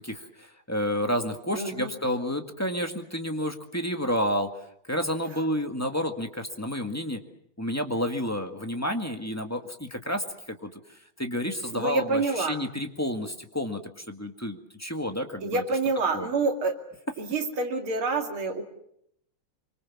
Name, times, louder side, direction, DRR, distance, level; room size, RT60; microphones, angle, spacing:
voice 1, 0.0-4.5 4.9-7.2 7.6-10.7 11.2-15.6 16.1-16.3, equal, 10° left, 5 dB, 1.6 m, -30 dB
voice 2, 1.5-1.9 11.7-12.6 15.4-16.7 17.2-18.7, right 3 dB, 75° right, 3 dB, 3.4 m, -27 dB
25.0 x 24.0 x 7.3 m, 0.74 s
omnidirectional pair, 2.4 m